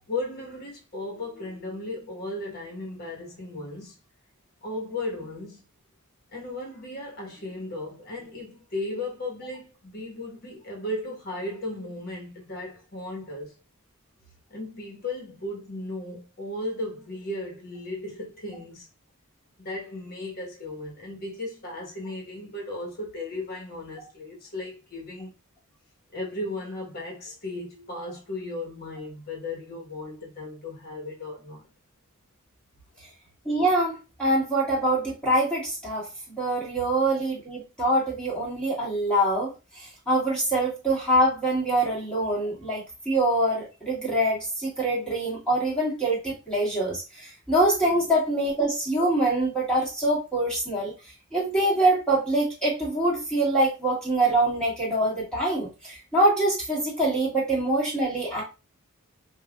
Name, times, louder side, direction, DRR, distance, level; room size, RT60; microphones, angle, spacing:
voice 1, 0.1-4.0 4.6-5.6 6.3-13.5 14.5-18.9 19.6-25.4 26.1-31.7, left 2 dB, 45° left, 1.2 m, -36 dB
voice 2, 33.4-50.9 51.3-58.4, right 1 dB, 5° left, 1.7 m, -24 dB
5.3 x 2.5 x 2.4 m
head